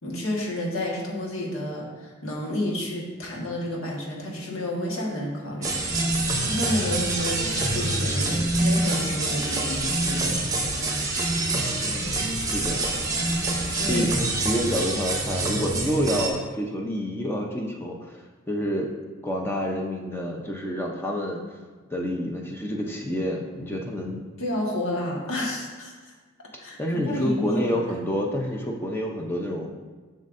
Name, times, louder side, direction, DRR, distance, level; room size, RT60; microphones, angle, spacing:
voice 1, 0.0-5.7 6.4-10.4 13.7-14.1 24.4-26.1 26.6-26.8 27.0-27.8, left 1 dB, 75° left, -3 dB, 1.5 m, -30 dB
sound 1, 5.6-16.3, right 2 dB, 15° right, 0.8 m, -26 dB
voice 2, 11.8-12.9 13.9-18.2 18.5-18.9 19.2-21.6 21.9-24.2 26.8-29.7, equal, 10° left, 0 dB, 0.5 m, -28 dB
7.4 x 6.4 x 2.6 m, 1.4 s
head